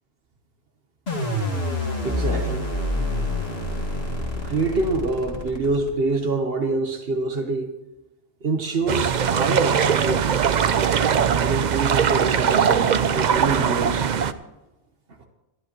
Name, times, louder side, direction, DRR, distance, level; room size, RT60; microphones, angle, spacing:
sound 1, 1.1-6.1, left 1 dB, 85° left, 2.5 m, -27 dB
voice 1, 1.8-2.6 4.4-7.7 8.4-10.5 11.4-14.1, right 3 dB, 70° right, 5 dB, 1.4 m, -26 dB
boat stage, 8.9-14.3, right 7 dB, 55° right, 0.7 m, -21 dB
20.0 x 12.5 x 3.1 m, 1.0 s
omnidirectional pair, 1.0 m